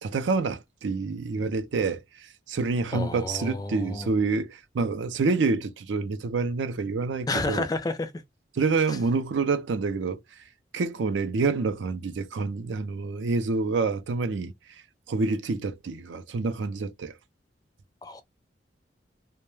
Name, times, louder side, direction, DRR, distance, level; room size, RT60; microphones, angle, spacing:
voice 1, 0.0-7.7 8.5-10.2 10.7-17.1, right 4 dB, 90° right, 0.4 m, -27 dB
voice 2, 2.9-4.1 7.3-8.1 18.0-18.2, left 2 dB, 20° left, 0.3 m, -30 dB
2.2 x 2.1 x 3.0 m
head